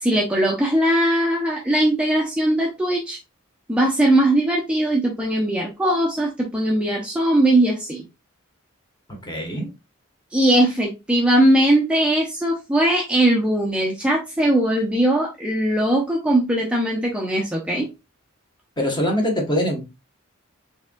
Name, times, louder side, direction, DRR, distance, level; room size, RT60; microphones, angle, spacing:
voice 1, 0.0-3.2 3.7-8.0 10.3-17.9, right 1 dB, 5° right, -2 dB, 0.7 m, -20 dB
voice 2, 9.1-9.7 18.8-19.8, equal, 20° left, 1 dB, 1.3 m, -23 dB
4.6 x 3.6 x 2.3 m, 0.25 s
head